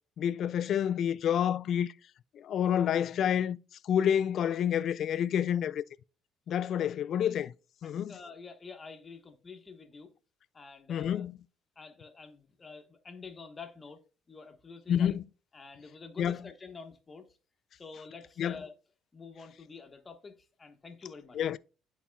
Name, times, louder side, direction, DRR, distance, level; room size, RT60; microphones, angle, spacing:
voice 1, 0.2-1.9 2.3-3.6 3.8-5.8 6.5-7.5 7.8-8.2 10.9-11.4 14.9-15.2 16.2-16.4 18.4-18.6 21.3-21.6, left 9 dB, 55° left, 0.3 m, -28 dB
voice 2, 7.8-10.1 10.5-11.3 11.8-14.0 14.3-15.1 15.5-17.3 17.7-18.7 19.1-21.4, left 4 dB, 25° left, 1.2 m, -48 dB
11.0 x 4.2 x 2.3 m
cardioid pair, 120°, 0 cm